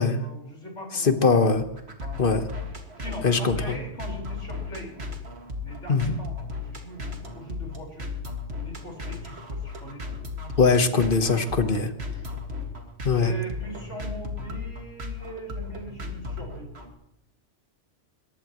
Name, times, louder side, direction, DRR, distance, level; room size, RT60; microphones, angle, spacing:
voice 1, 0.0-1.4 2.0-2.3 3.0-5.0 5.6-8.1 8.6-10.0 12.0-12.1 13.1-16.7, equal, 90° left, -1 dB, 5.2 m, -41 dB
voice 2, 1.0-1.6 2.2-2.4 3.2-3.6 5.9-6.2 10.6-11.9 13.0-13.3, left 4 dB, 50° left, 8 dB, 1.3 m, -21 dB
sound 1, 1.5-16.9, left 3 dB, 60° right, 2.2 m, -36 dB
22.5 x 19.0 x 3.1 m, 0.83 s
omnidirectional pair, 1.2 m